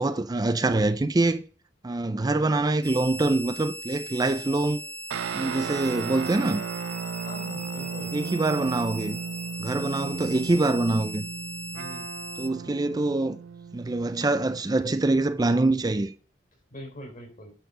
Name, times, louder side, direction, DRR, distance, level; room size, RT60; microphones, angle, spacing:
voice 1, 0.0-1.4 1.8-4.8 5.3-6.6 8.1-9.2 9.6-11.3 12.4-13.4 13.7-16.1, right 2 dB, 20° right, 0.4 m, -25 dB
sound 1, 2.8-12.5, right 1 dB, 10° left, 1.3 m, -39 dB
sound 2, 5.1-14.8, right 7 dB, 90° right, 0.3 m, -36 dB
voice 2, 7.2-8.2 9.8-10.2 11.7-12.1 16.7-17.5, equal, 45° left, 4.0 m, -42 dB
10.0 x 4.4 x 6.7 m
head